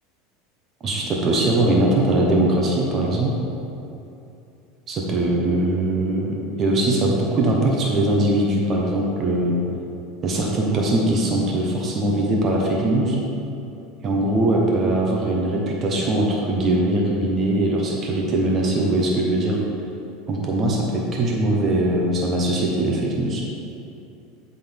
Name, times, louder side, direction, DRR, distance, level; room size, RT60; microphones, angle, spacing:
voice 1, 0.8-3.3 4.9-9.6 10.2-13.2 14.0-19.6 20.3-23.5, right 1 dB, 30° right, -2 dB, 1.0 m, -21 dB
10.0 x 3.9 x 3.6 m, 2.7 s
supercardioid pair, 130°, 0 cm